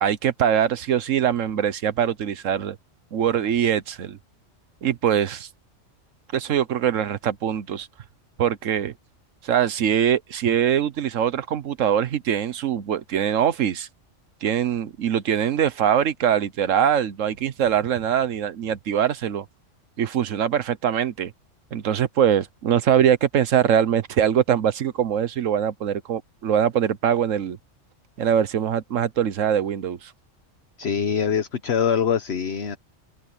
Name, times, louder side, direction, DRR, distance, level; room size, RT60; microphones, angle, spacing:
voice 1, 0.0-2.8 3.1-4.2 4.8-5.5 6.3-7.9 8.4-8.9 9.4-13.9 14.4-19.5 20.0-21.3 21.7-27.6 28.2-30.1, right 9 dB, 80° right, 1.3 m, -22 dB
voice 2, 30.8-32.8, left 7 dB, 60° left, 1.2 m, -23 dB
omnidirectional pair, 1.3 m